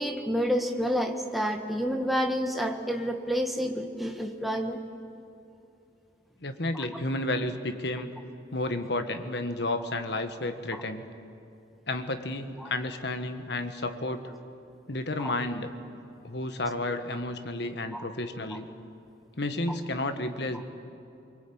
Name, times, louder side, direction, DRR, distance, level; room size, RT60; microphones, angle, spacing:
voice 1, 0.0-4.8 6.7-6.9 12.6-12.7 15.2-15.3 17.9-18.0, equal, ahead, 3 dB, 1.5 m, -29 dB
voice 2, 6.4-8.1 8.5-11.1 11.9-14.3 14.9-15.7 16.2-18.7 19.4-20.6, left 2 dB, 60° left, 8 dB, 1.5 m, -31 dB
24.5 x 23.5 x 8.8 m, 2.7 s
head